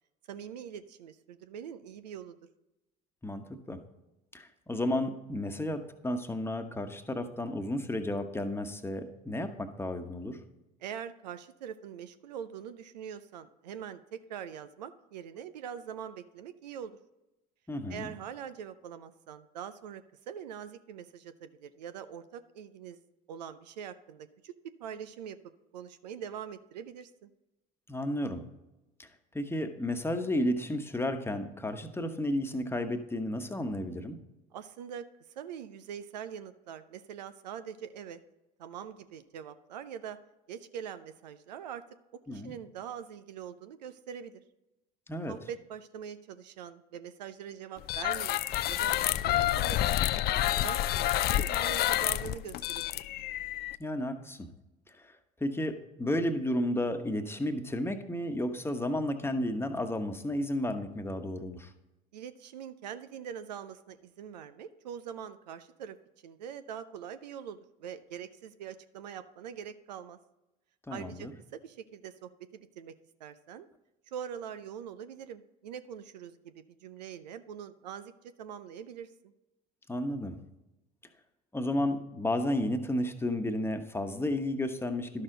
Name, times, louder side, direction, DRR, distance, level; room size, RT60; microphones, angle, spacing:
voice 1, 0.3-2.4 10.8-17.0 17.9-23.0 23.3-25.4 25.7-27.3 34.5-35.0 35.4-38.2 38.6-40.2 40.5-41.8 42.3-44.4 45.3-48.9 49.2-49.9 50.3-53.0 62.1-66.0 66.2-70.2 70.9-72.9 73.2-73.7 74.1-78.1 78.4-79.3, right 8 dB, 85° right, 12 dB, 0.5 m, -43 dB
voice 2, 3.2-3.8 4.3-10.4 17.7-18.1 27.9-28.4 29.0-29.1 29.3-34.2 42.3-42.5 45.1-45.3 53.8-54.5 54.9-55.1 55.4-61.7 70.9-71.3 79.9-80.4 81.5-85.2, left 1 dB, 10° left, 6 dB, 1.1 m, -32 dB
sound 1, 47.8-53.7, left 13 dB, 50° left, 0.4 m, -29 dB
11.5 x 6.4 x 3.9 m, 0.96 s
hypercardioid pair, 65°, 21 cm